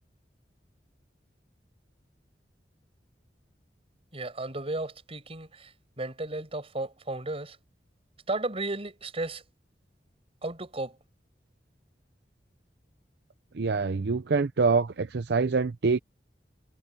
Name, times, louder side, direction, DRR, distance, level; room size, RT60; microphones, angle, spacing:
voice 1, 4.1-5.7 6.0-7.6 8.3-9.4 10.4-11.0, right 2 dB, 35° right, 6.3 m, -34 dB
voice 2, 13.5-16.0, right 4 dB, 65° right, 0.6 m, -25 dB
head